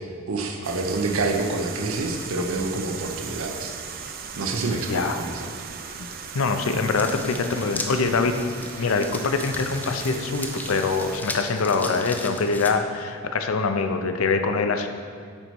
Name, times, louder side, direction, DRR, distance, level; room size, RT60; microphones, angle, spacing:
voice 1, 0.0-3.8 4.4-5.5, right 3 dB, 75° right, 3 dB, 0.7 m, -27 dB
sound 1, 0.6-11.2, right 6 dB, 45° right, 0.5 m, -38 dB
voice 2, 6.3-8.3 8.8-14.9, left 4 dB, 70° left, 7 dB, 0.5 m, -24 dB
sound 2, 6.9-12.7, left 2 dB, 10° left, 0.4 m, -37 dB
8.8 x 4.1 x 4.6 m, 2.2 s
head